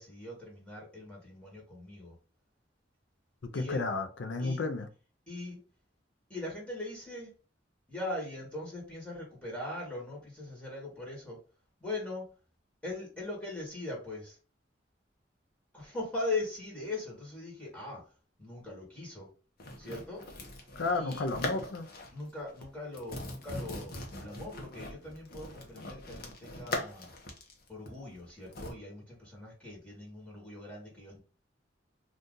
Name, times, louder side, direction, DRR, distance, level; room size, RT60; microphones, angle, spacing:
voice 1, 0.0-2.1 3.5-3.8 4.4-4.6 5.3-5.6 6.3-7.3 7.9-11.4 11.8-12.3 12.8-14.4 15.7-18.0 18.4-19.3 19.8-20.2 20.6-20.7 20.9-21.3 22.1-27.1 27.7-31.2, left 2 dB, 5° left, 1.3 m, -40 dB
voice 2, 3.5-4.9 20.8-21.9, left 3 dB, 85° left, 0.5 m, -32 dB
sound 1, 19.6-22.2 22.5-22.7 22.9-28.7, left 2 dB, 55° left, 0.8 m, -41 dB
2.7 x 2.4 x 3.7 m
head